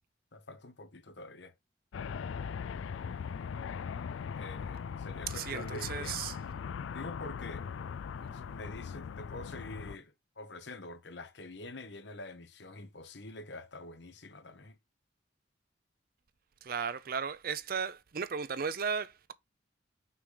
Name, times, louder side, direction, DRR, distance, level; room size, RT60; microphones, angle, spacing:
voice 1, 0.3-1.5 4.4-6.3 6.9-7.7 8.2-14.8, left 2 dB, 65° left, 1.1 m, -46 dB
sound 1, 1.9-10.0, left 6 dB, 90° left, 0.4 m, -40 dB
voice 2, 5.3-6.4 16.6-19.3, right 6 dB, 50° right, 0.5 m, -35 dB
6.0 x 4.8 x 3.9 m
head